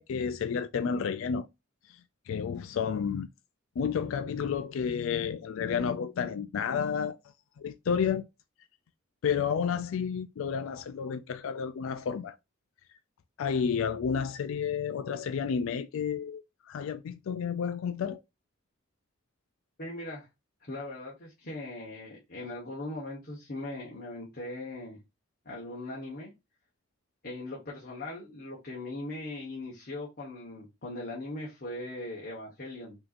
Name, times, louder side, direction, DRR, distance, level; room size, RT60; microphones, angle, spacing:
voice 1, 0.0-1.5 1.9-2.0 2.3-3.3 3.8-7.2 7.6-8.2 9.2-12.3 13.4-18.2, left 6 dB, 70° left, 0.3 m, -31 dB
voice 2, 19.8-20.3 20.6-25.0 25.4-26.3 27.2-33.0, left 2 dB, 50° left, 1.2 m, -39 dB
5.3 x 2.9 x 2.5 m
head